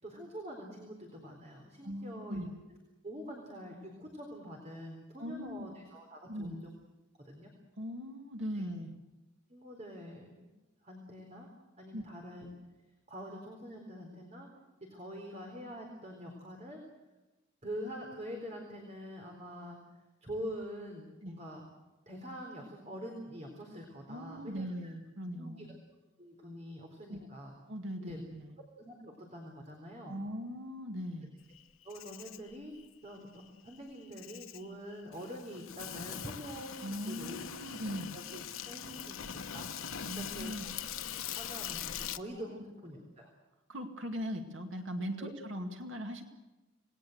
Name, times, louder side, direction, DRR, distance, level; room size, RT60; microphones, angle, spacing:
voice 1, 0.0-2.5 3.0-6.7 7.2-7.5 8.5-8.7 9.5-11.5 11.8-12.5 13.1-14.5 14.9-16.8 17.6-19.8 20.2-21.6 22.1-24.9 25.3-25.7 26.2-27.5 28.0-28.3 28.8-30.1 31.8-32.7 33.0-37.4 38.1-39.2 39.5-39.7 40.1-40.8 41.3-43.3 45.2-45.3, equal, 35° right, 1 dB, 4.1 m, -45 dB
voice 2, 1.8-2.5 5.2-5.7 6.3-6.6 7.8-8.9 11.9-12.0 21.2-21.4 24.1-25.7 27.1-27.3 27.7-28.5 30.1-31.3 36.8-38.2 40.0-40.7 42.3-42.6 43.7-46.2, equal, 65° right, 4 dB, 2.3 m, -40 dB
Insect, 31.5-42.2, left 8 dB, 85° left, 1.1 m, -42 dB
27.5 x 20.0 x 8.1 m, 1.1 s
head